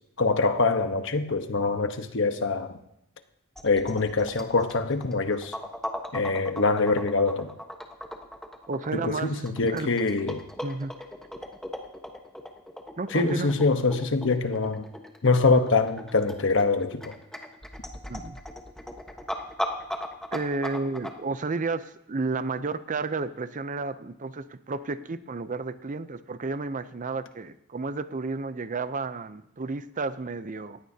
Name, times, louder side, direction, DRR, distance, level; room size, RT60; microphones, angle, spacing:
voice 1, 0.2-2.7 3.6-5.5 6.1-7.5 8.9-10.4 13.1-14.9 15.2-17.1, left 3 dB, 60° left, 7 dB, 1.1 m, -24 dB
sound 1, 3.6-21.1, left 1 dB, 5° left, 1.2 m, -38 dB
voice 2, 8.7-9.9 10.6-11.0 13.0-13.5 18.1-18.4 20.3-30.8, right 3 dB, 35° right, 12 dB, 0.6 m, -32 dB
18.5 x 16.0 x 2.8 m, 0.79 s
head